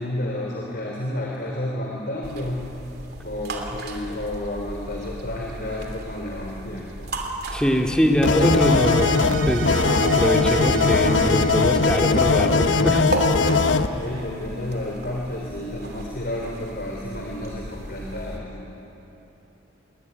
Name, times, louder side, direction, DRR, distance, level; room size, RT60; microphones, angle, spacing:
voice 1, 0.0-2.6 3.2-7.1 13.4-18.6, left 1 dB, 50° left, -1 dB, 3.6 m, -31 dB
sound 1, 2.2-18.4, right 2 dB, 50° right, 3.0 m, -36 dB
voice 2, 7.5-9.1 9.5-13.1, equal, 5° left, 1 dB, 2.3 m, -22 dB
sound 2, 8.2-13.9, left 4 dB, 65° left, 1.0 m, -20 dB
sound 3, 8.3-13.6, right 4 dB, 70° right, 1.2 m, -34 dB
26.0 x 22.5 x 9.7 m, 2.9 s
head